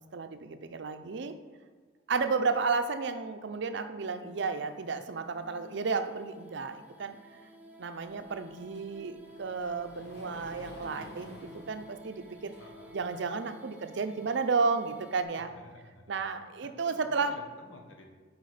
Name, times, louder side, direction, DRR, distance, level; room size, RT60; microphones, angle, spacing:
voice 1, 0.1-1.3 2.1-7.2 7.8-12.5 12.9-15.5 16.1-17.4, right 4 dB, 65° right, 9 dB, 0.5 m, -32 dB
sound 1, 4.3-15.2, right 1 dB, 10° right, 0.8 m, -54 dB
Sliding door, 8.0-13.0, left 1 dB, 60° left, 1.3 m, -52 dB
voice 2, 12.6-13.0 15.3-16.2 16.8-18.1, left 2 dB, 80° left, 2 dB, 1.2 m, -53 dB
8.0 x 4.8 x 4.9 m, 1.5 s
head